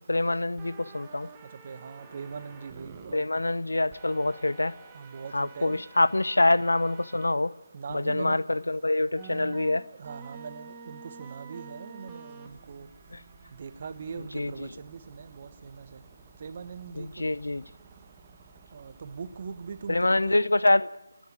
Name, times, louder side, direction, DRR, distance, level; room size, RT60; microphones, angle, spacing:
voice 1, 0.1-1.3 3.1-4.7 5.3-7.5 7.9-9.8 14.3-14.5 17.0-17.6 19.9-20.9, left 2 dB, 85° left, 0.7 m, -25 dB
sound 1, 0.6-3.1 3.9-7.3 7.9-8.0 9.1-20.4, right 5 dB, 15° right, 1.7 m, -50 dB
voice 2, 1.6-3.2 4.9-5.8 7.7-8.4 10.0-12.9 13.6-15.8 16.4-17.1 18.7-20.0 20.3-20.5, right 5 dB, 40° right, 1.2 m, -41 dB
29.5 x 10.5 x 9.5 m
figure-of-eight pair, 160°, 0 cm